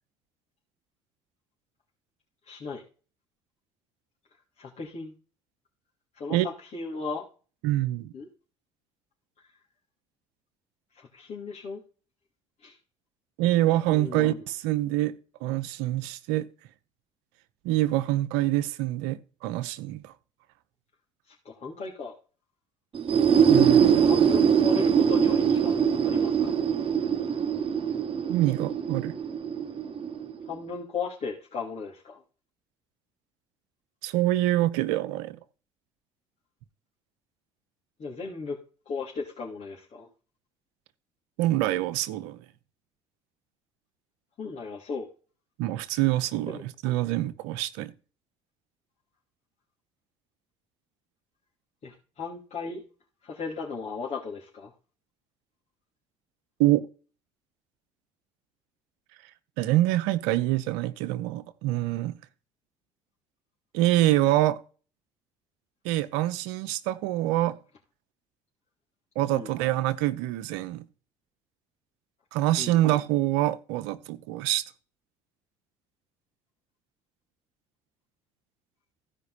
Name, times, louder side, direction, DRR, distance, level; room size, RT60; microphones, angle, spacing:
voice 1, 2.4-2.8 4.6-5.1 6.1-7.2 8.1-8.3 9.4-9.5 10.9-11.8 12.6-12.8 13.9-14.4 21.3-22.1 23.9-25.8 26.0-26.6 30.4-32.2 38.0-38.6 38.8-40.1 44.4-45.1 46.5-46.6 51.8-52.8 53.2-54.7 69.3-69.5 72.6-72.8, left 4 dB, 50° left, 3.3 m, -36 dB
voice 2, 7.6-8.1 13.4-15.1 15.4-16.5 17.6-20.1 23.5-24.0 28.3-29.1 34.0-35.4 41.4-42.4 45.6-47.9 56.6-56.8 59.6-62.1 63.7-64.6 65.8-67.6 69.2-70.8 72.3-74.6, right 15 dB, 80° right, 0.9 m, -25 dB
sound 1, 22.9-30.6, right 7 dB, 35° right, 1.3 m, -23 dB
15.5 x 5.3 x 4.2 m
hypercardioid pair, 65°, 15 cm